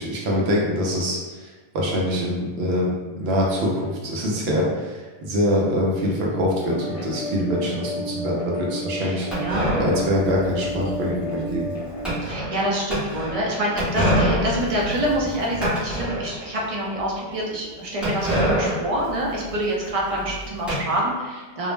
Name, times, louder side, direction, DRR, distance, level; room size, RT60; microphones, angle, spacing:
voice 1, 0.0-9.3 9.7-11.7, equal, 80° right, -3 dB, 0.9 m, -24 dB
sound 1, 6.6-12.1, equal, 70° left, 0.8 m, -32 dB
voice 2, 9.0-9.8 12.2-21.7, right 1 dB, 45° right, -4 dB, 0.5 m, -26 dB
sound 2, 9.3-16.6 17.0-17.1 17.2-17.3 18.0-20.8, equal, ahead, 0.6 m, -27 dB
2.5 x 2.0 x 3.1 m, 1.3 s
omnidirectional pair, 1.0 m